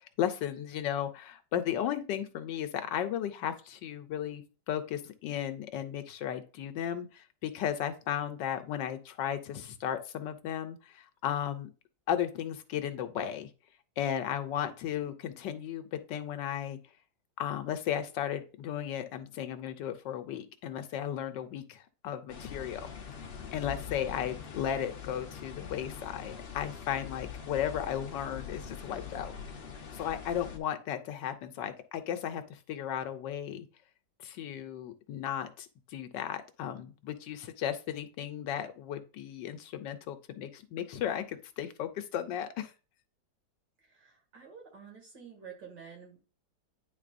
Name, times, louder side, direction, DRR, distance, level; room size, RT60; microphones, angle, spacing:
voice 1, 0.0-11.7 12.1-13.5 14.0-16.8 17.4-22.9 23.5-29.3 29.9-33.7 34.2-42.7, left 10 dB, 75° left, 9 dB, 1.3 m, -35 dB
sound 1, 22.3-30.6, left 7 dB, 55° left, 0.6 m, -43 dB
voice 2, 43.8-46.2, right 6 dB, 70° right, -1 dB, 2.8 m, -50 dB
9.8 x 3.9 x 2.5 m, 0.34 s
omnidirectional pair, 2.0 m